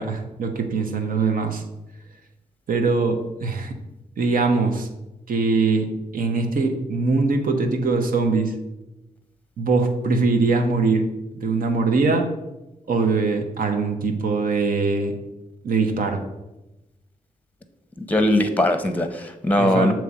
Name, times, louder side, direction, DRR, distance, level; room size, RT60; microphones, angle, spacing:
voice 1, 0.0-1.6 2.7-3.8 4.2-4.9 5.3-5.9 6.1-8.5 9.6-11.0 11.4-12.3 12.9-15.1 15.6-16.2 19.6-19.9, right 4 dB, 70° right, 5 dB, 0.8 m, -22 dB
voice 2, 18.0-19.9, left 1 dB, 10° left, 8 dB, 0.7 m, -20 dB
6.7 x 3.1 x 4.8 m, 0.99 s
cardioid pair, 55°, 15 cm